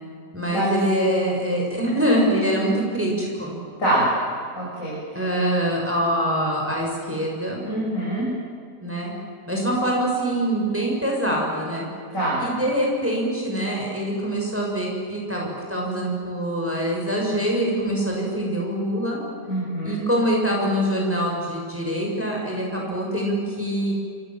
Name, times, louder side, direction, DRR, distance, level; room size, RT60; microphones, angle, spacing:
voice 1, 0.3-3.6 5.2-7.6 8.8-9.1 9.5-11.9 12.4-19.2 19.8-23.9, equal, 5° right, -2 dB, 7.0 m, -24 dB
voice 2, 4.5-5.0 7.6-8.3 12.1-12.4 19.5-19.9, right 1 dB, 50° left, -7 dB, 8.3 m, -24 dB
27.5 x 27.5 x 7.8 m, 2.3 s
omnidirectional pair, 1.8 m